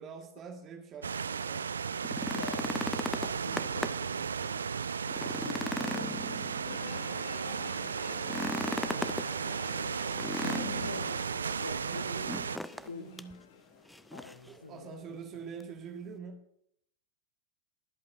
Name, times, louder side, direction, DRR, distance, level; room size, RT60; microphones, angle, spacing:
voice 1, 0.0-1.7 11.9-13.4 14.5-16.4, right 6 dB, 30° right, 3 dB, 1.8 m, -46 dB
sound 1, 1.0-12.6, right 6 dB, 70° right, 0.3 m, -35 dB
sound 2, 1.9-4.1 4.6-4.7 5.1-7.0 8.2-9.3 10.2-11.1 12.2-12.9 13.2-13.3 13.9-14.5 15.6-15.7, left 1 dB, 5° left, 0.5 m, -37 dB
voice 2, 2.2-2.7 3.2-6.8 8.3-9.5 10.4-11.2 11.6-12.4 12.9-13.1 14.1-15.2, left 3 dB, 75° left, 9 dB, 1.3 m, -45 dB
sound 3, 6.6-14.7 15.1-15.2, left 8 dB, 55° left, 1.2 m, -48 dB
22.5 x 8.2 x 2.7 m, 0.72 s
figure-of-eight pair, 90°, 0 cm